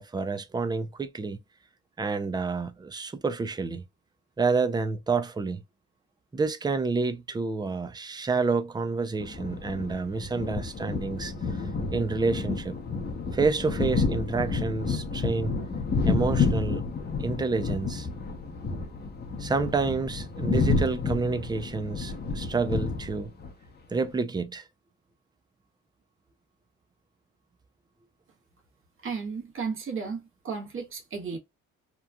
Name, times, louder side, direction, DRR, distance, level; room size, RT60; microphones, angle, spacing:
voice 1, 0.0-1.4 2.0-3.8 4.4-5.6 6.3-11.6 11.9-12.8 13.3-15.5 16.1-16.8 17.2-18.1 19.4-23.3 23.9-24.6, right 4 dB, 15° right, 0.4 m, -29 dB
sound 1, 9.2-23.5, left 4 dB, 35° left, 0.8 m, -30 dB
voice 2, 29.0-31.4, right 5 dB, 45° right, 1.2 m, -34 dB
3.0 x 2.3 x 2.3 m
cardioid pair, 90°, 30 cm